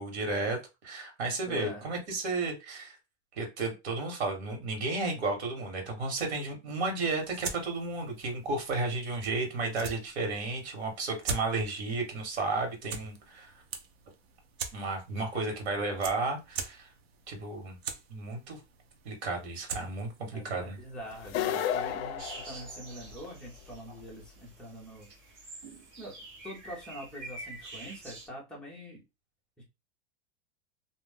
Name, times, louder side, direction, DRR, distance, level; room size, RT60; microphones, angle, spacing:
voice 1, 0.0-3.0 3.3-13.5 14.7-16.9 17.3-17.8 18.1-18.6 19.0-20.8, right 3 dB, 85° right, 3 dB, 1.4 m, -33 dB
voice 2, 1.5-1.8 20.3-25.1 26.0-29.0 29.6-29.7, equal, 5° left, -4 dB, 0.5 m, -44 dB
sound 1, 7.1-21.4, right 5 dB, 70° right, 0.7 m, -44 dB
sound 2, 21.2-23.3, left 9 dB, 70° left, 0.4 m, -32 dB
sound 3, 22.2-28.3, right 2 dB, 45° right, 1.2 m, -47 dB
2.5 x 2.0 x 3.4 m, 0.25 s
supercardioid pair, 170°, 32 cm